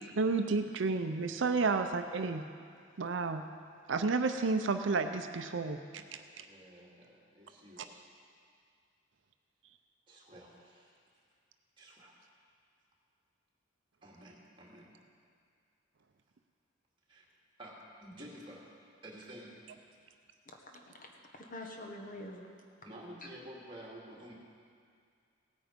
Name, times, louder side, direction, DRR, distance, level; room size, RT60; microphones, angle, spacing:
voice 1, 0.2-2.4 3.0-3.4 3.9-6.0, right 4 dB, 65° right, 7 dB, 0.6 m, -31 dB
voice 2, 6.1-8.0 10.1-11.0 11.8-12.1 14.0-14.9 17.1-17.3 17.6-18.7 19.0-19.6 22.8-24.3, right 1 dB, 25° right, -4 dB, 2.4 m, -51 dB
voice 3, 20.4-22.5, left 1 dB, 40° left, 1 dB, 1.4 m, -47 dB
17.0 x 9.2 x 5.2 m, 2.2 s
head